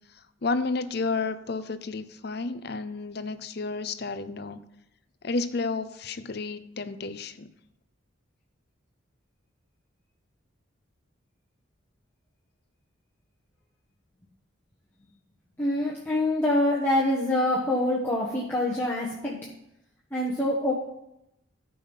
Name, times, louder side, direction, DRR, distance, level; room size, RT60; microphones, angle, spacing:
voice 1, 0.4-4.6 5.2-7.5, left 3 dB, 50° left, 12 dB, 0.6 m, -31 dB
voice 2, 15.6-19.4 20.1-20.7, left 1 dB, 10° left, -6 dB, 1.3 m, -25 dB
13.5 x 5.5 x 5.6 m, 0.84 s
head